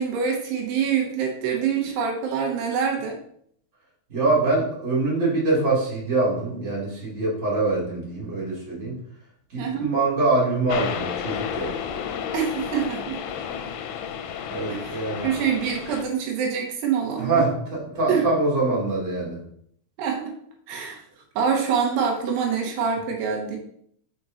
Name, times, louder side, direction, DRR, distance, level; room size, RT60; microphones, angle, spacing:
voice 1, 0.0-3.2 9.6-9.9 12.3-13.2 14.7-17.5 18.1-18.3 20.0-20.3 20.7-21.0 21.4-23.6, right 7 dB, 80° right, 2 dB, 3.0 m, -25 dB
voice 2, 4.1-9.0 9.5-11.7 14.5-15.3 17.2-19.4, right 2 dB, 25° right, -5 dB, 1.7 m, -24 dB
sound 1, 10.7-16.0, left 8 dB, 90° left, 2.8 m, -32 dB
6.2 x 5.3 x 3.8 m, 0.66 s
omnidirectional pair, 4.8 m